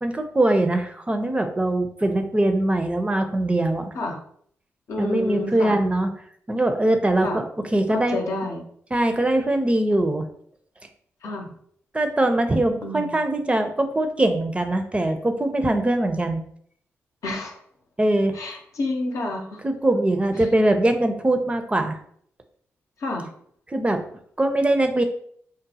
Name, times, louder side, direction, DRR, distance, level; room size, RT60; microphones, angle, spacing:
voice 1, 0.0-3.9 5.0-6.1 6.5-7.4 7.7-8.2 8.9-10.3 11.9-16.4 18.0-18.3 19.6-22.0 23.7-24.0 24.4-25.0, right 1 dB, 20° right, 6 dB, 0.5 m, -22 dB
voice 2, 4.9-5.8 7.2-7.4 7.9-8.6 11.2-11.5 12.8-13.1 17.2-17.6 18.3-19.6 23.0-23.3, left 2 dB, 70° left, 1 dB, 0.7 m, -29 dB
3.9 x 2.0 x 2.7 m, 0.63 s
supercardioid pair, 50°, 6 cm